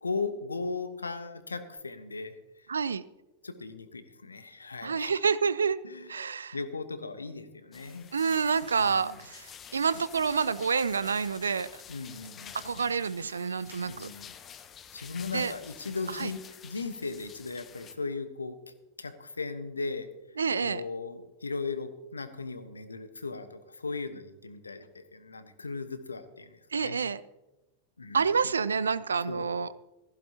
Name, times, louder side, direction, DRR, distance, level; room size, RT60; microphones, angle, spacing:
voice 1, 0.0-2.7 3.4-5.2 5.8-6.1 6.5-8.1 8.8-9.2 11.9-12.9 13.8-14.3 14.9-18.6 19.0-20.1 20.6-27.0 28.0-28.2 29.3-29.6, left 4 dB, 75° left, 11 dB, 1.1 m, -37 dB
voice 2, 2.7-3.0 4.8-5.8 6.1-6.6 8.1-11.7 12.5-14.1 15.3-15.5 16.2-16.3 20.4-20.8 26.7-27.2 28.1-29.7, right 5 dB, 70° right, 19 dB, 0.5 m, -28 dB
sound 1, 7.7-17.9, left 8 dB, 25° left, 0.9 m, -49 dB
16.0 x 15.0 x 2.9 m, 0.96 s
figure-of-eight pair, 90°, 0 cm